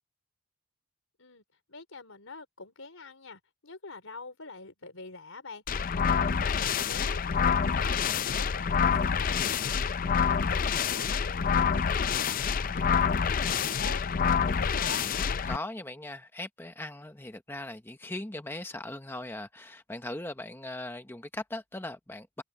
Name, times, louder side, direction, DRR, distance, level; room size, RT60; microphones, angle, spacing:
voice 1, 1.7-15.0, left 3 dB, 70° left, 4.3 m, -46 dB
sound 1, 5.7-15.6, left 6 dB, 40° left, 0.4 m, -27 dB
voice 2, 15.5-22.4, left 1 dB, 10° left, 0.8 m, -39 dB
head